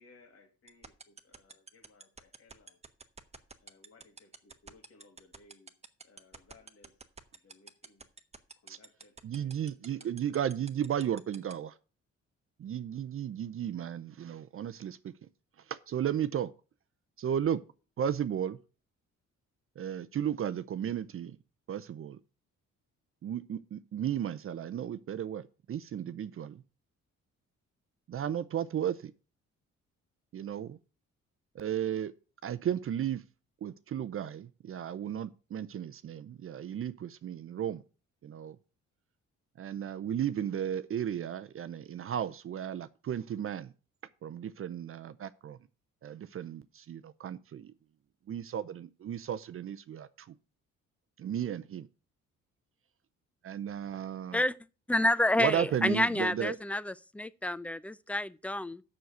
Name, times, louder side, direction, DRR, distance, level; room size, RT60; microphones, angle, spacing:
voice 1, 0.0-2.8 3.6-5.7 6.0-7.0 7.4-8.1 8.6-10.4, left 3 dB, 50° left, 2.5 m, -61 dB
sound 1, 0.7-11.5, right 4 dB, 20° right, 1.1 m, -47 dB
voice 2, 9.2-11.7 12.6-15.1 15.7-16.5 17.2-17.6 18.0-18.6 19.8-21.3 21.7-22.2 23.2-26.6 28.1-29.1 30.3-30.8 31.5-32.1 32.4-33.2 33.6-37.8 38.2-38.6 39.6-43.7 44.2-45.6 46.0-47.7 48.3-50.3 51.2-51.9 53.4-54.4 55.4-56.6, right 9 dB, 45° right, 0.6 m, -34 dB
voice 3, 54.9-58.8, left 1 dB, 5° left, 0.5 m, -29 dB
7.0 x 6.4 x 7.8 m
cardioid pair, 90°, 30 cm